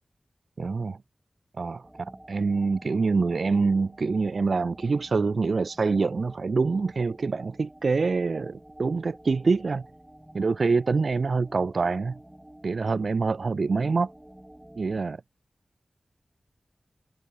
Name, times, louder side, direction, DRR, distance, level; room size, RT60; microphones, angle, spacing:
voice 1, 0.6-1.0 1.6-9.9 10.3-12.2 12.6-14.1 14.8-15.2, right 4 dB, 65° right, 1.1 m, -25 dB
sound 1, 1.8-15.0, right 1 dB, 10° right, 5.4 m, -50 dB
wide cardioid pair, 95°, 0 cm